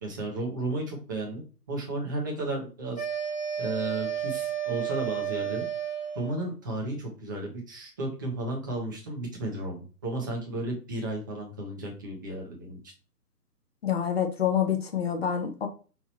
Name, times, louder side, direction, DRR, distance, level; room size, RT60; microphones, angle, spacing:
voice 1, 0.0-3.1 3.6-5.6 6.1-12.8, right 2 dB, 15° right, -2 dB, 0.6 m, -33 dB
sound 1, 3.0-6.4, right 9 dB, 10° left, 1.0 m, -32 dB
voice 2, 13.8-15.7, left 8 dB, 40° left, 4 dB, 0.8 m, -27 dB
4.4 x 2.8 x 4.3 m, 0.36 s
figure-of-eight pair, 130°, 49 cm